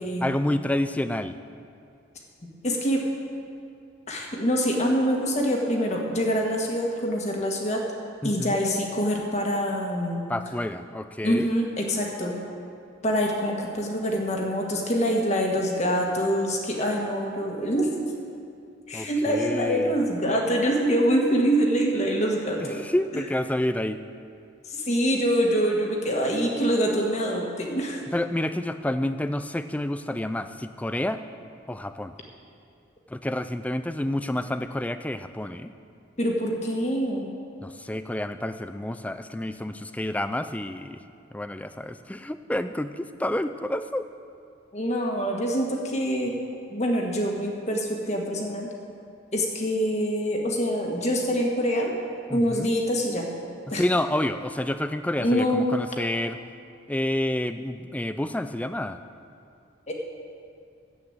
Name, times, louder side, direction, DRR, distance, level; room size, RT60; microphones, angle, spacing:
voice 1, 0.2-1.4 8.2-8.6 10.3-11.5 18.9-19.9 22.6-24.0 28.1-31.2 31.7-32.1 33.1-35.7 37.6-41.0 41.3-44.1 52.3-52.7 53.7-56.4 56.9-59.0, left 1 dB, 5° left, 11 dB, 0.3 m, -29 dB
voice 2, 2.6-3.0 4.1-7.8 8.2-10.3 11.2-12.4 13.0-17.9 18.9-22.8 23.1-23.2 24.6-28.0 36.2-37.3 44.7-46.3 46.7-48.7 49.3-51.9 52.3-53.3 53.7-53.8 55.2-55.6 59.9-60.0, equal, 35° left, 0 dB, 1.6 m, -25 dB
10.5 x 8.3 x 7.9 m, 2.4 s
head